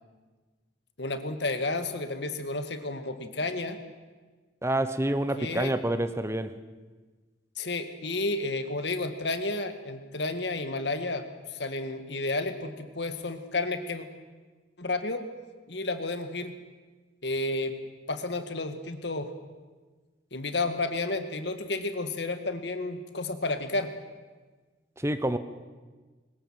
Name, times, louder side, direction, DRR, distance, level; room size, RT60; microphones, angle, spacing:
voice 1, 1.0-3.8 5.4-5.7 7.6-14.1 14.8-15.2 15.7-16.5 17.2-17.7 18.1-19.3 20.3-23.9, left 2 dB, 70° left, 9 dB, 1.9 m, -31 dB
voice 2, 4.6-6.5 25.0-25.4, right 1 dB, 15° right, 11 dB, 0.9 m, -27 dB
22.0 x 20.0 x 7.6 m, 1.3 s
head